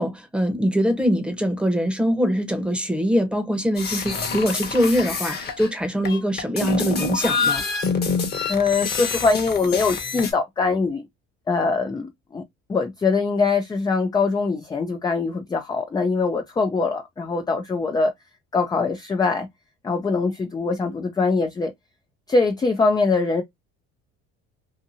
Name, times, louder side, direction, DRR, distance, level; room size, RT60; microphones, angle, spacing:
voice 1, 0.0-7.6, equal, 5° right, 0.8 m, -23 dB
sound 1, 3.8-5.7 6.0-10.3, left 5 dB, 35° left, 1.0 m, -26 dB
voice 2, 8.5-11.0 11.5-12.4 12.7-18.1 18.5-19.5 19.8-21.7 22.3-23.4, left 4 dB, 15° left, 0.4 m, -22 dB
2.8 x 2.5 x 2.6 m
cardioid pair, 105°, 30 cm